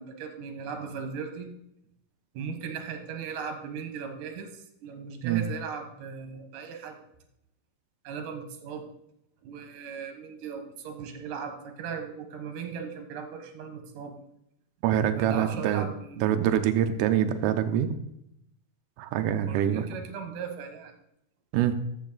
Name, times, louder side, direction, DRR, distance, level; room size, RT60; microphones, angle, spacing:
voice 1, 0.0-1.5 2.3-7.0 8.0-8.9 9.4-14.2 15.2-16.2 19.5-20.9, right 6 dB, 65° right, 6 dB, 2.7 m, -38 dB
voice 2, 14.8-15.9 16.2-17.9 19.0-19.9 21.5-21.7, right 10 dB, 90° right, 8 dB, 1.8 m, -25 dB
13.5 x 7.0 x 3.9 m, 0.79 s
omnidirectional pair, 4.5 m